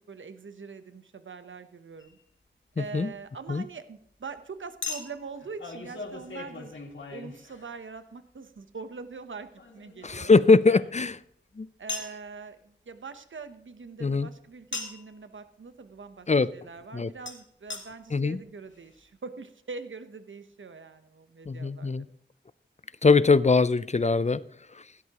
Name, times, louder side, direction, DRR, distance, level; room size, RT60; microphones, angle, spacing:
voice 1, 0.1-2.2 2.8-6.8 7.1-10.6 11.8-22.0, right 4 dB, 90° right, 10 dB, 0.9 m, -43 dB
Chink clink, 2.0-2.1 4.8-8.0 9.6-11.2 11.9-12.2 14.7-15.1 17.3-17.4 17.7-17.8 18.5-18.6 18.7-18.8, left 3 dB, 80° left, 2.2 m, -39 dB
voice 2, 2.8-3.1 3.5-3.6 10.0-11.2 11.6-11.7 14.0-14.3 16.3-16.5 16.9-17.1 18.1-18.4 21.5-22.0 23.0-24.4 24.7-24.8, left 4 dB, 35° left, 17 dB, 0.5 m, -22 dB
16.0 x 12.5 x 3.0 m, 0.71 s
wide cardioid pair, 55°, 19 cm